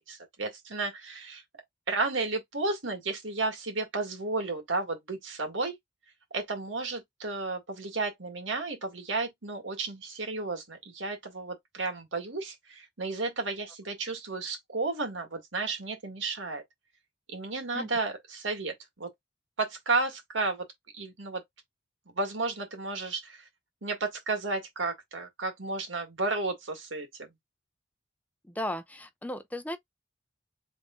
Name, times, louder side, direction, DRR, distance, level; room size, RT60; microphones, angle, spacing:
voice 1, 0.1-1.4 1.9-5.7 6.3-16.6 17.3-19.1 19.6-20.7 20.9-21.4 22.1-23.5 23.8-27.3, right 3 dB, 85° right, 2.0 m, -33 dB
voice 2, 28.5-29.8, left 1 dB, 10° left, 0.5 m, -36 dB
3.6 x 3.3 x 3.7 m
head